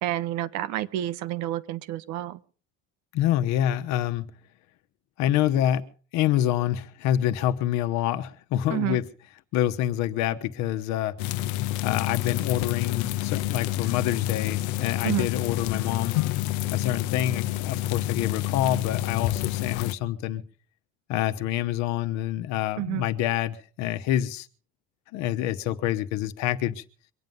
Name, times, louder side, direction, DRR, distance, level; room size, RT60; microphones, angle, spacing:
voice 1, 0.0-2.4 8.7-9.0 15.0-15.3 22.8-23.0, right 14 dB, 70° right, 1.0 m, -29 dB
voice 2, 3.1-4.3 5.2-5.9 6.1-9.0 9.5-11.1 11.8-16.2 16.7-20.4 21.1-24.5 25.1-26.8, left 12 dB, 70° left, 1.2 m, -26 dB
sound 1, 11.2-19.9, left 15 dB, 85° left, 0.8 m, -28 dB
24.0 x 9.4 x 5.4 m
cardioid pair, 170°, 30 cm